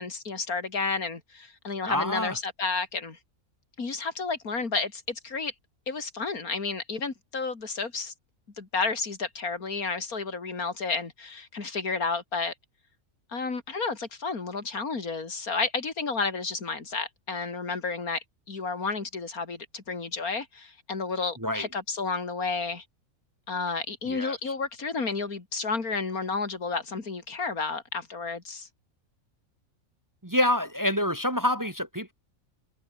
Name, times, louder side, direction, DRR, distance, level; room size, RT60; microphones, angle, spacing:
voice 1, 0.0-3.2 3.8-5.5 5.9-8.1 8.6-12.5 13.3-22.8 23.5-28.7, left 4 dB, 90° left, 3.3 m, -31 dB
voice 2, 1.8-2.4 21.4-21.7 24.0-24.5 30.2-32.1, left 1 dB, 15° right, 1.3 m, -27 dB
omnidirectional pair, 1.5 m